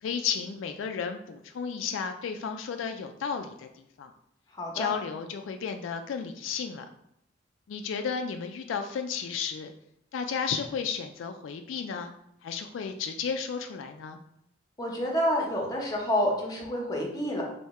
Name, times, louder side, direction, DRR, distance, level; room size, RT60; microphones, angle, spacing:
voice 1, 0.0-4.1 4.7-6.8 7.7-9.7 10.1-12.1 12.4-14.2, left 6 dB, 75° left, 6 dB, 0.3 m, -33 dB
voice 2, 4.5-4.9 14.8-17.4, equal, 20° left, -1 dB, 0.9 m, -28 dB
3.5 x 2.7 x 4.2 m, 0.75 s
head